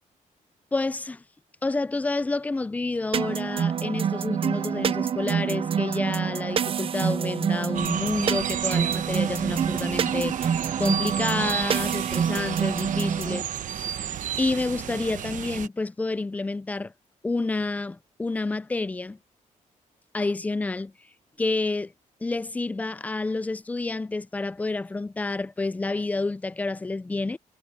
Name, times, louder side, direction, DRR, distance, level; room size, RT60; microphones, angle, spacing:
voice 1, 0.7-1.2 1.6-13.5 13.7-13.9 14.4-16.9 17.2-19.2 20.1-20.9 21.4-21.9 22.2-27.4, left 3 dB, 10° left, 0.4 m, -29 dB
sound 1, 3.1-13.4, right 8 dB, 40° right, 0.5 m, -27 dB
sound 2, 7.8-15.7, right 9 dB, 70° right, 1.0 m, -32 dB
wide cardioid pair, 160°, 14 cm